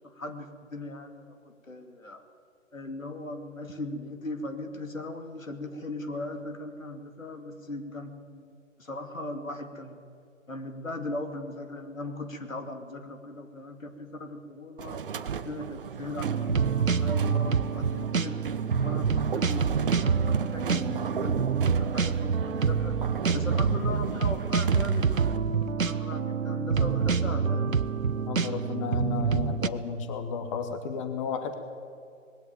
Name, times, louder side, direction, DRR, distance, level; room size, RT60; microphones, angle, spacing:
voice 1, 0.0-2.2 2.7-10.0 10.5-18.4 18.8-27.7, left 2 dB, 75° left, 5 dB, 2.7 m, -38 dB
sound 1, 14.8-25.4, right 7 dB, 40° right, 0.9 m, -36 dB
sound 2, 16.2-29.7, right 6 dB, 75° right, 1.0 m, -27 dB
voice 2, 28.3-31.6, left 6 dB, 25° left, 7 dB, 1.2 m, -33 dB
19.5 x 17.0 x 9.0 m, 2.5 s
figure-of-eight pair, 135°, 40 cm